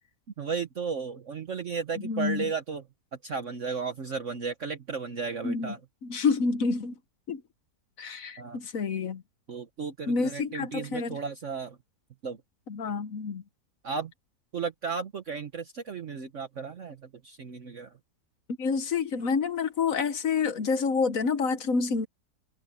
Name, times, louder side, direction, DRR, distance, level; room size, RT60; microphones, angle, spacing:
voice 1, 0.4-2.8 3.2-5.8 8.4-8.6 9.5-11.8 12.2-12.4 13.8-14.1 14.5-17.9, right 5 dB, 50° right, 1.4 m, -34 dB
voice 2, 2.0-2.4 5.4-5.7 6.0-6.9 7.3-7.4 8.0-9.2 10.1-11.2 12.7-13.4 18.6-22.1, left 5 dB, 60° left, 1.4 m, -28 dB
omnidirectional pair, 1.7 m